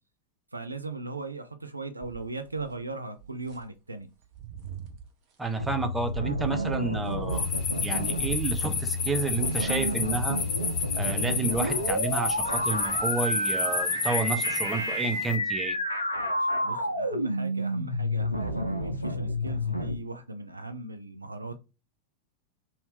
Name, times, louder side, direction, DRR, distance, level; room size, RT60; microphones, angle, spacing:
voice 1, 0.5-4.1 16.6-21.5, right 3 dB, 80° right, 8 dB, 0.5 m, -38 dB
sound 1, 2.0-3.8 4.2-5.1 5.7-13.8 14.3-14.7, right 9 dB, 45° right, 0.8 m, -44 dB
voice 2, 5.4-7.5 7.8-10.4 10.9-15.8, right 3 dB, 10° right, 6 dB, 0.6 m, -30 dB
sound 2, 5.6-20.0, equal, 90° left, 0.6 m, -30 dB
sound 3, 7.3-15.4, left 5 dB, 35° left, 1.0 m, -31 dB
2.8 x 2.7 x 3.4 m, 0.28 s
figure-of-eight pair, 90°, 0 cm